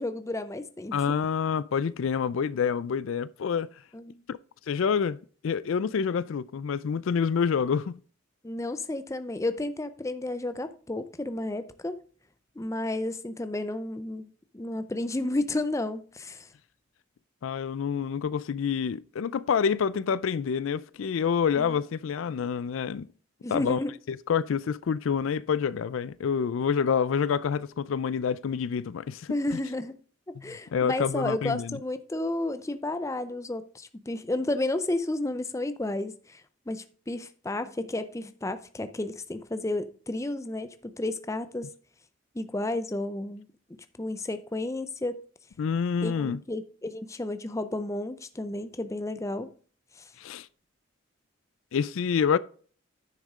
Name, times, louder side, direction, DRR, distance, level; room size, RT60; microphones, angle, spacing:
voice 1, 0.0-1.0 3.9-4.2 8.4-12.0 12.6-16.5 23.4-23.9 29.3-30.0 30.3-36.4 36.7-41.7 42.3-43.5 44.0-45.2 46.0-49.5 50.0-50.1, left 2 dB, 15° left, 0.5 m, -32 dB
voice 2, 0.9-3.7 4.3-4.4 4.7-8.0 17.4-23.1 23.5-23.8 24.1-29.6 30.4-31.8 45.6-46.4 50.2-50.5 51.7-52.4, left 6 dB, 75° left, 0.4 m, -27 dB
10.0 x 6.5 x 3.6 m
head